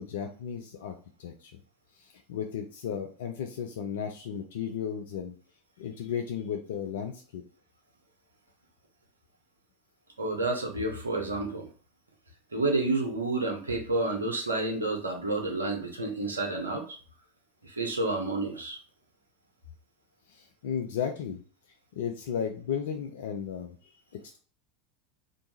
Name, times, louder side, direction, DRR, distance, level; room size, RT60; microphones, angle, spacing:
voice 1, 0.0-1.5 1.9-5.3 5.8-7.4 20.3-21.4 22.0-24.4, left 8 dB, 65° left, 3 dB, 0.3 m, -35 dB
voice 2, 10.2-11.7 12.5-16.8 17.6-18.8, right 2 dB, 80° right, 2 dB, 0.6 m, -30 dB
2.5 x 2.3 x 2.8 m, 0.41 s
figure-of-eight pair, 80°, 0 cm